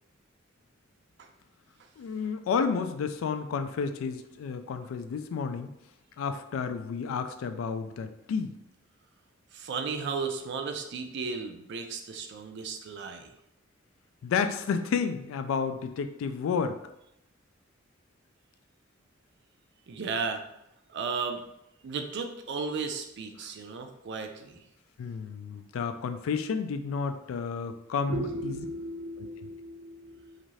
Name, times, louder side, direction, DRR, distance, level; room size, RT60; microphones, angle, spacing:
voice 1, 2.0-5.7 6.2-8.6 14.2-16.8 23.4-23.5 25.0-28.7 29.2-29.5, left 5 dB, 80° left, 8 dB, 0.3 m, -31 dB
voice 2, 9.5-13.3 19.9-20.4 20.9-21.4 21.8-24.6 28.1-30.4, right 4 dB, 60° right, 5 dB, 0.4 m, -35 dB
2.6 x 2.4 x 3.1 m, 0.82 s
head